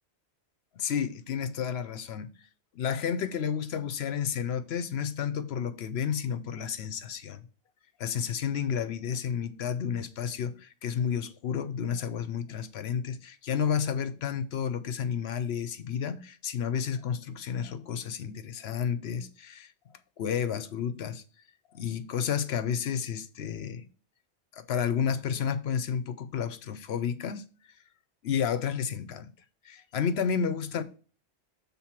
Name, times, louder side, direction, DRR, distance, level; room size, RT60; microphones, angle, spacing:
voice 1, 0.8-2.3 2.7-7.4 8.0-19.7 20.2-21.2 21.7-23.8 24.5-27.4 28.2-29.3 29.7-30.8, left 7 dB, 70° left, 0.9 m, -31 dB
7.4 x 3.7 x 5.8 m
omnidirectional pair, 1.2 m